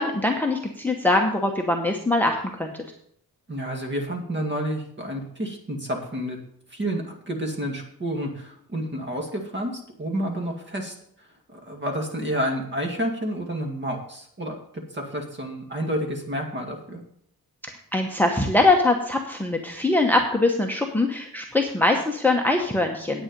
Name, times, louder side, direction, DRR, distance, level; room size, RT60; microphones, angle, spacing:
voice 1, 0.0-2.7 17.6-23.2, left 2 dB, 5° left, 3 dB, 0.9 m, -22 dB
voice 2, 3.5-6.4 6.7-10.9 11.5-14.6 14.9-17.0, equal, 30° right, 2 dB, 2.1 m, -29 dB
10.0 x 8.9 x 5.3 m, 0.68 s
wide cardioid pair, 140°, 36 cm